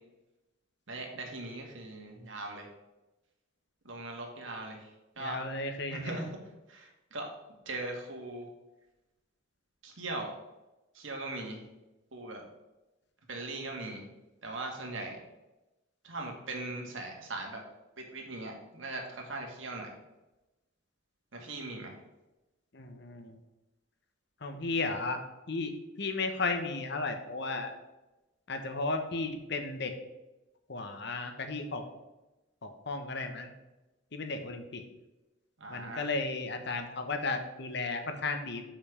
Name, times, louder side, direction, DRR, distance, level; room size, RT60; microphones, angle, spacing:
voice 1, 0.9-2.7 3.9-4.9 5.2-5.4 5.9-6.3 6.7-7.3 7.7-8.5 9.8-10.3 11.0-11.6 12.1-12.4 13.3-14.1 14.4-15.2 16.0-17.6 18.0-19.9 21.3-21.9 35.6-36.1, right 2 dB, 85° right, 1 dB, 1.8 m, -39 dB
voice 2, 5.2-6.2 22.7-23.3 24.4-25.2 25.5-25.7 26.0-27.7 28.5-29.9 30.7-31.8 32.6-33.5 34.1-34.8 35.7-38.6, left 3 dB, 60° left, 6 dB, 1.0 m, -34 dB
7.0 x 5.7 x 5.0 m, 1.0 s
head